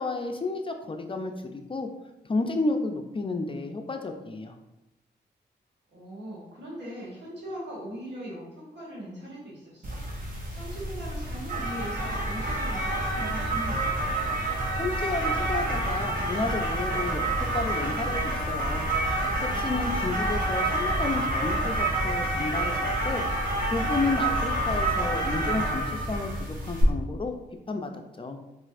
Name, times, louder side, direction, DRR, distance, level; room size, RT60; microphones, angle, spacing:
voice 1, 0.0-1.9 2.2-4.6 14.8-18.9 19.4-27.3 27.7-27.9 28.2-28.4, left 3 dB, 30° left, 5 dB, 0.4 m, -31 dB
voice 2, 5.9-10.0 10.5-14.0, equal, 75° right, -5 dB, 1.4 m, -40 dB
sound 1, 9.8-26.8, right 1 dB, 50° right, 1.0 m, -28 dB
4.0 x 2.4 x 2.5 m, 0.95 s
cardioid pair, 50°, 18 cm